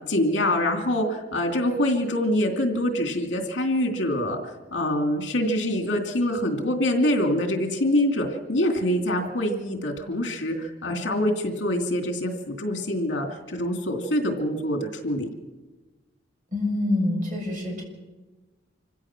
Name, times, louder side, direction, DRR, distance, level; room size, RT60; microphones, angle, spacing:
voice 1, 0.1-15.3, left 1 dB, 70° left, 3 dB, 2.8 m, -25 dB
voice 2, 16.5-17.8, left 2 dB, 45° right, 0 dB, 7.3 m, -26 dB
26.0 x 16.0 x 6.2 m, 1.2 s
head